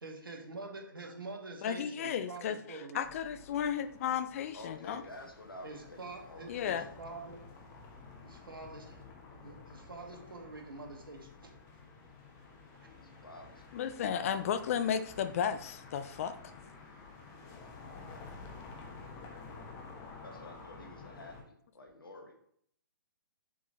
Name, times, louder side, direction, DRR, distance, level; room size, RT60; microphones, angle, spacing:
voice 1, 0.0-3.0 5.6-7.4 8.2-9.0 9.3-11.5 12.7-12.9, right 3 dB, 80° right, 2 dB, 1.5 m, -46 dB
voice 2, 1.6-5.0 6.5-6.9 13.7-16.4, left 8 dB, 40° left, 12 dB, 0.5 m, -34 dB
sound 1, 3.0-21.4, left 4 dB, 25° left, 1.0 m, -51 dB
voice 3, 4.5-6.6 13.2-14.1 14.6-14.7 16.6-16.7 17.4-18.3 20.2-22.3, left 2 dB, 85° left, 3 dB, 1.5 m, -51 dB
6.7 x 3.7 x 3.9 m, 0.67 s
figure-of-eight pair, 130°, 12 cm